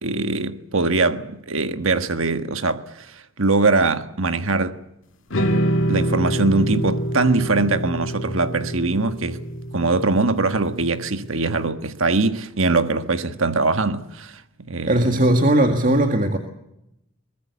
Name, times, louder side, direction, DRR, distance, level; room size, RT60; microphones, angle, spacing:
voice 1, 0.0-4.8 5.9-9.4 9.7-14.4 14.7-15.1, right 3 dB, 65° right, 1.5 m, -22 dB
sound 1, 5.3-11.6, right 1 dB, 65° left, 2.0 m, -26 dB
voice 2, 14.9-16.4, right 1 dB, 40° right, 1.9 m, -18 dB
23.0 x 21.0 x 8.3 m
head